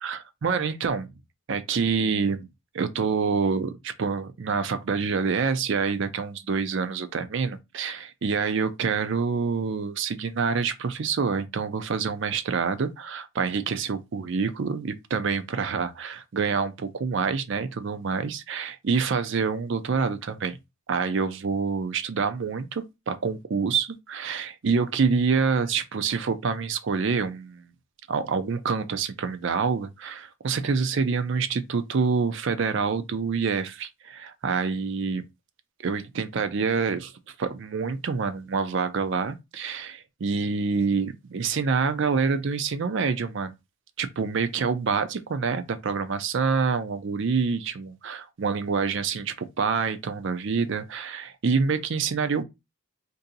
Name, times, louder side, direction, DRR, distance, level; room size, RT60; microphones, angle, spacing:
voice 1, 0.0-1.1 1.5-2.5 2.7-20.6 20.9-27.7 28.1-35.2 35.8-43.5 44.0-52.4, right 5 dB, 60° right, 0.4 m, -27 dB
2.7 x 2.6 x 3.9 m
head